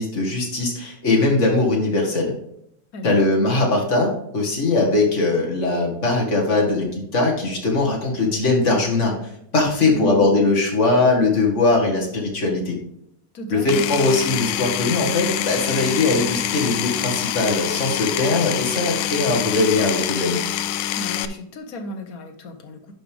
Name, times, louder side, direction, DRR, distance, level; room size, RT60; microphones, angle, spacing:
voice 1, 0.0-2.3 3.0-12.8 13.5-20.4, left 2 dB, 40° left, -1 dB, 2.1 m, -20 dB
voice 2, 2.9-3.3 9.8-10.3 13.3-13.9 20.9-22.9, equal, 55° left, 6 dB, 1.3 m, -34 dB
Power tool, 13.7-21.3, left 11 dB, 80° left, 1.2 m, -25 dB
11.0 x 5.2 x 3.5 m, 0.75 s
omnidirectional pair, 2.0 m